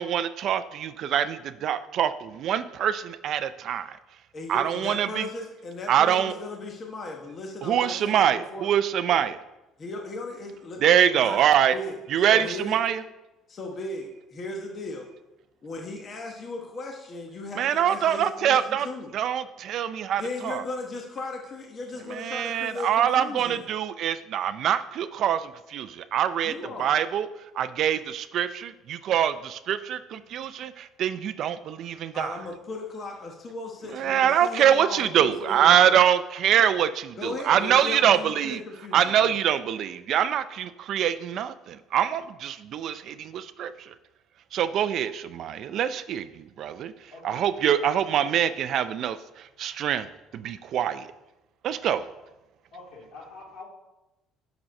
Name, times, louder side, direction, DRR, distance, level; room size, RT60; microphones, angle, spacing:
voice 1, 0.0-4.0 4.5-5.3 5.9-6.3 7.6-9.4 10.8-11.7 12.1-13.0 17.6-18.9 19.1-20.6 22.1-26.5 26.8-27.3 27.6-32.4 33.9-38.6 38.9-43.9 44.5-46.9 47.2-49.2 49.6-50.1 50.3-51.1 51.6-52.0, right 9 dB, 45° right, 12 dB, 0.4 m, -24 dB
voice 2, 4.3-8.7 9.8-11.4 11.7-12.8 13.5-15.1 15.6-19.1 20.2-23.7 26.4-26.9 32.1-36.0 37.2-39.4, left 2 dB, 25° left, 1 dB, 1.0 m, -37 dB
voice 3, 47.1-47.5 47.8-47.9 52.2-52.3 52.7-53.6, left 3 dB, 75° left, -3 dB, 3.4 m, -45 dB
8.9 x 6.1 x 5.2 m, 0.97 s
cardioid pair, 175°, 0 cm